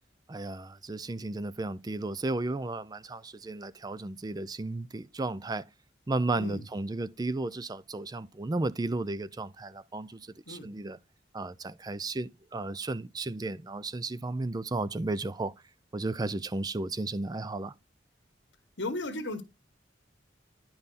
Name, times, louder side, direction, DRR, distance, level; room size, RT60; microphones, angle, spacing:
voice 1, 0.3-5.6 6.1-11.0 11.3-15.5 15.9-17.7, right 2 dB, 20° right, 0.4 m, -34 dB
voice 2, 18.8-19.4, left 2 dB, 80° left, 1.6 m, -35 dB
10.5 x 5.5 x 4.1 m
head